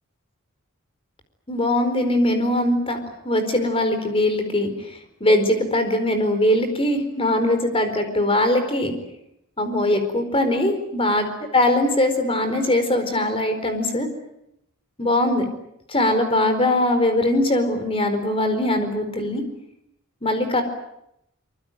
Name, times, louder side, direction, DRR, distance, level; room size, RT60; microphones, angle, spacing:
voice 1, 1.5-3.0 3.2-8.9 9.6-11.3 11.5-14.1 15.0-15.4 15.9-19.4 20.2-20.6, left 1 dB, 25° left, 8 dB, 4.5 m, -21 dB
25.0 x 23.5 x 9.2 m, 0.81 s
head